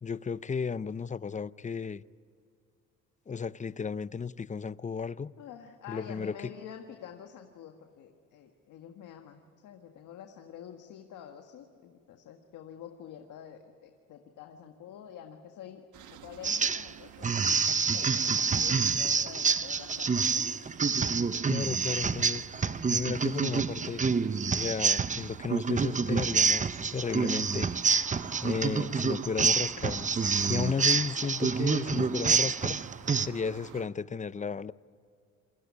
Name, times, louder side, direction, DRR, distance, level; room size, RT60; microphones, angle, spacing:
voice 1, 0.0-2.0 3.3-5.3 5.9-6.4 21.5-22.4 22.9-24.0 24.5-27.7 28.4-30.1 30.5-32.8 33.2-34.7, left 5 dB, 25° left, 0.6 m, -34 dB
voice 2, 5.4-15.9 16.1-17.3 17.9-20.6 27.0-27.2, left 9 dB, 85° left, 1.7 m, -47 dB
sound 1, 15.9-33.9, right 10 dB, 80° right, 1.3 m, -49 dB
sound 2, 16.4-16.9 17.2-33.3, right 5 dB, 25° right, 0.7 m, -27 dB
28.0 x 21.5 x 9.7 m
cardioid pair, 90°, 30 cm